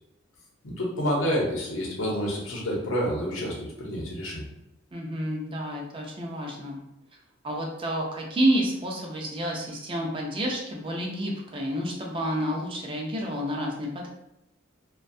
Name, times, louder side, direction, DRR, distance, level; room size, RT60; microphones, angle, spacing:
voice 1, 0.6-4.5, equal, 80° left, -3 dB, 0.8 m, -28 dB
voice 2, 4.9-6.8 7.4-14.1, equal, 25° right, -1 dB, 0.4 m, -29 dB
2.4 x 2.2 x 2.5 m, 0.87 s
head